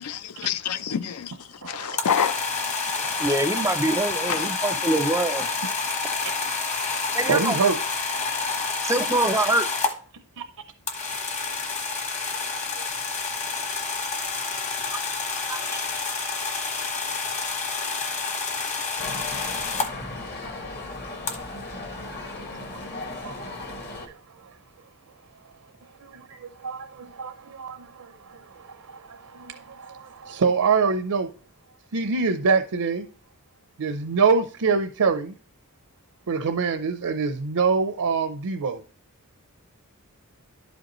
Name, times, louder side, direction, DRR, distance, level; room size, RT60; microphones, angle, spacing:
voice 1, 0.0-1.3 1.6-2.7 3.0-3.2 4.3-4.5, left 8 dB, 80° left, 0.5 m, -28 dB
voice 2, 1.6-2.0 3.0-4.5 6.2-6.3 6.9-7.0 7.3-7.8 8.1-8.4 10.4-10.5 20.4-20.5 21.1-21.2 22.5-22.6 23.2-23.5 24.0-24.5 26.0-31.3 31.9-33.1 33.8-35.3 36.3-38.8, right 5 dB, 75° right, 0.5 m, -26 dB
sound 1, 1.9-9.9 10.9-19.9 21.3-21.4, left 4 dB, 30° left, 1.2 m, -28 dB
voice 3, 3.2-5.5 7.1-7.6 8.8-9.7 15.5-15.8, right 2 dB, 15° right, 0.4 m, -24 dB
sound 2, 19.0-24.1, left 2 dB, 50° left, 1.6 m, -36 dB
11.5 x 5.1 x 3.0 m
head